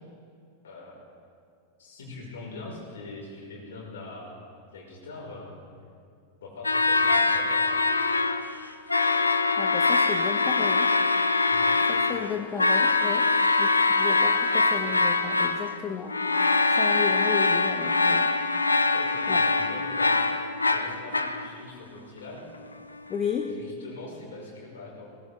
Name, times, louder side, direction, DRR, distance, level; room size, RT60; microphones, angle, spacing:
voice 1, 0.6-1.0 1.8-4.4 4.7-5.6 6.4-7.7 11.5-11.7 18.9-20.2 20.7-22.5 23.5-25.1, left 3 dB, 60° left, -3 dB, 4.8 m, -42 dB
sound 1, 6.6-8.6 8.9-15.7 16.1-21.5, left 3 dB, 80° left, 0.6 m, -23 dB
voice 2, 9.6-10.9 11.9-13.3 13.6-16.2 16.7-18.3 19.3-19.4 23.1-23.6, left 7 dB, 25° left, 4 dB, 1.0 m, -33 dB
20.5 x 18.0 x 3.4 m, 2.3 s
figure-of-eight pair, 90°, 0 cm